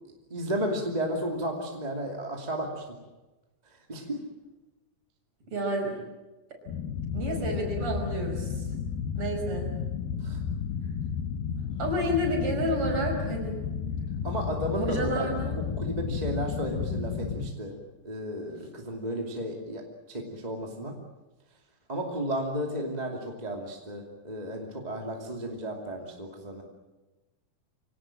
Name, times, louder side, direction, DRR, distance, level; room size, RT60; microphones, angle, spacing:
voice 1, 0.3-3.0 3.9-4.2 10.2-10.4 14.2-17.8 18.0-21.0 21.9-26.6, equal, 15° right, 1 dB, 2.1 m, -33 dB
voice 2, 5.5-6.0 7.1-8.6 9.2-9.7 11.8-13.6 14.7-15.5, equal, 40° right, 1 dB, 6.3 m, -30 dB
sound 1, 6.7-17.5, left 7 dB, 85° left, 3.0 m, -32 dB
25.5 x 18.5 x 8.9 m, 1.1 s
omnidirectional pair, 4.1 m